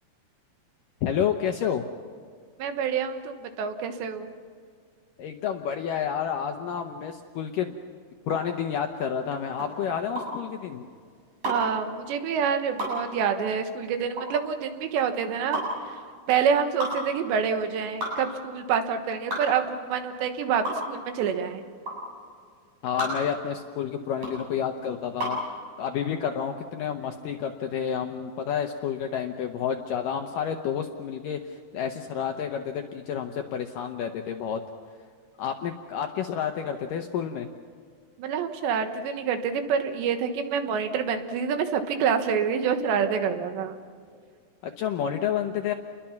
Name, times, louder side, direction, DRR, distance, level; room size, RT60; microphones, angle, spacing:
voice 1, 1.0-1.8 5.2-7.8 8.3-10.9 22.8-25.4 25.8-34.6 35.4-37.5 44.6-45.7, left 8 dB, 75° left, 4 dB, 2.0 m, -30 dB
voice 2, 2.6-4.3 11.5-15.6 15.9-16.0 16.3-21.6 38.2-43.8, right 7 dB, 85° right, 7 dB, 3.6 m, -27 dB
sound 1, 8.2-25.5, equal, 40° right, 9.3 m, -34 dB
29.5 x 21.5 x 5.9 m, 2.1 s
omnidirectional pair, 4.9 m